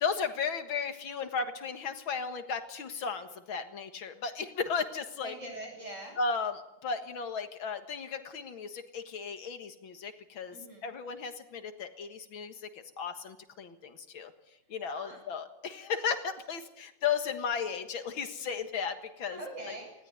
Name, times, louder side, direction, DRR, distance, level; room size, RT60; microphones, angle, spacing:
voice 1, 0.0-5.3 6.2-10.6 10.8-14.3 14.7-19.4, left 5 dB, 80° left, 8 dB, 2.4 m, -35 dB
voice 2, 5.2-6.2 10.5-10.9 14.9-15.2 19.3-19.9, right 1 dB, 35° right, 1 dB, 8.2 m, -43 dB
20.0 x 17.5 x 9.5 m, 0.89 s
omnidirectional pair, 2.2 m